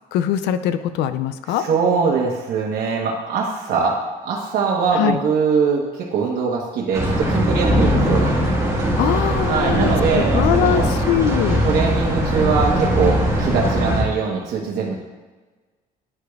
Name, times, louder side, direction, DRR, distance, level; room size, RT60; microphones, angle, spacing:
voice 1, 0.1-1.7 4.9-5.2 9.0-11.6, left 10 dB, 85° left, 11 dB, 0.4 m, -22 dB
voice 2, 1.7-4.0 4.2-8.3 9.5-10.8 11.6-15.0, right 5 dB, 65° right, -2 dB, 1.0 m, -22 dB
sound 1, 6.9-14.0, equal, 15° right, 1.6 m, -20 dB
9.8 x 4.7 x 2.3 m, 1.3 s
cardioid pair, 110°, 17 cm